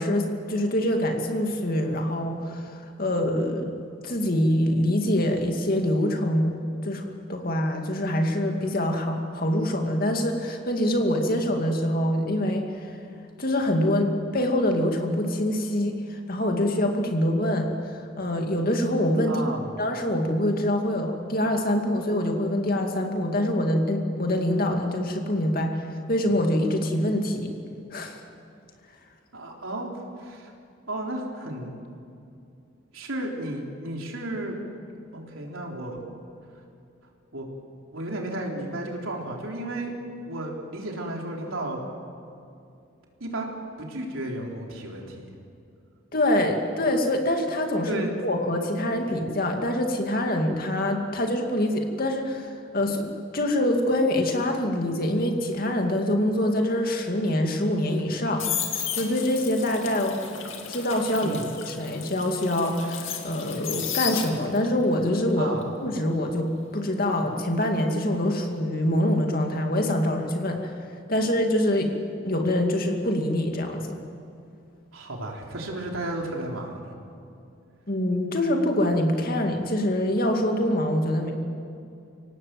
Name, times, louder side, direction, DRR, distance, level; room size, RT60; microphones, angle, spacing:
voice 1, 0.0-3.7 4.0-13.0 13.4-19.4 19.8-27.5 27.9-28.2 46.1-53.1 53.3-60.4 60.7-65.5 65.8-70.7 71.1-71.9 72.2-74.0 77.9-81.3, left 1 dB, 45° left, 3 dB, 2.4 m, -25 dB
voice 2, 19.3-19.8 29.3-29.9 30.2-30.5 30.9-31.8 32.9-34.6 35.1-36.0 37.3-37.5 37.9-39.9 40.3-41.8 43.2-43.5 43.8-45.3 47.9-48.1 61.2-61.5 65.4-65.7 74.9-77.0, right 1 dB, 85° right, 0 dB, 3.8 m, -33 dB
sound 1, 58.0-64.7 65.0-67.9 68.2-68.5, left 8 dB, 75° left, 2.5 m, -34 dB
25.5 x 18.0 x 7.8 m, 2.5 s
head